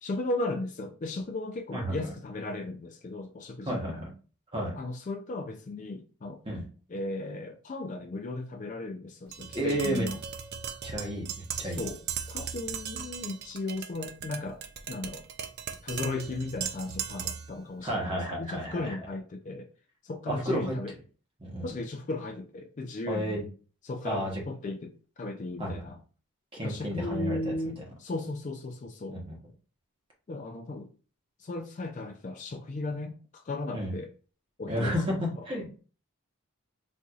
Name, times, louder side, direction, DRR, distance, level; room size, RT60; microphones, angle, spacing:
voice 1, 0.0-4.0 4.7-6.4 6.9-10.2 11.6-12.0 12.3-14.6 14.9-15.2 15.8-19.7 20.0-20.9 21.6-23.4 23.8-26.0 26.6-29.2 30.3-30.9 31.4-34.1 34.6-35.5, left 2 dB, 35° left, 0.3 m, -36 dB
voice 2, 3.7-4.1 4.5-4.7 6.4-6.6 9.5-10.1 10.8-11.8 17.8-18.9 20.3-20.7 21.4-21.7 23.1-23.4 24.0-24.3 25.6-25.8 26.5-27.5 29.1-29.4 33.7-33.9 34.7-35.8, equal, 25° right, 1.0 m, -32 dB
Tap, 9.3-17.6, right 8 dB, 45° right, 0.3 m, -38 dB
4.2 x 2.6 x 2.4 m
head